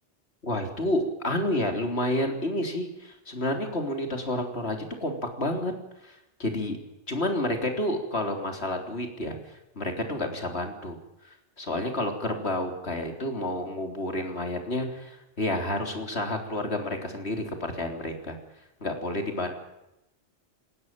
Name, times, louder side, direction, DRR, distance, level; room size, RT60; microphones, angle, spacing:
voice 1, 0.4-5.7 6.0-6.8 7.1-11.0 11.6-18.4 18.8-19.6, left 1 dB, 60° left, 5 dB, 3.9 m, -30 dB
19.5 x 18.0 x 9.0 m, 0.90 s
omnidirectional pair, 1.2 m